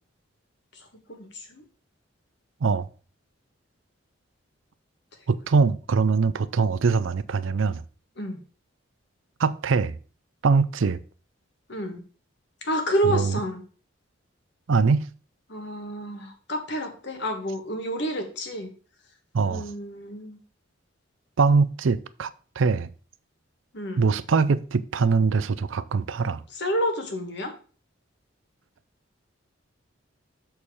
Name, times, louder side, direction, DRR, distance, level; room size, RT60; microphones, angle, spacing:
voice 1, 0.7-1.6 8.2-8.4 11.7-12.0 12.6-13.6 15.5-18.7 19.4-20.4 23.7-24.0 26.5-27.5, equal, 55° left, 1.5 m, -29 dB
voice 2, 5.3-7.8 9.4-10.0 10.4-11.0 13.1-13.4 14.7-15.1 19.3-19.7 21.4-22.3 22.6-22.9 24.0-26.4, right 4 dB, 70° right, 0.5 m, -22 dB
7.1 x 4.3 x 4.8 m
head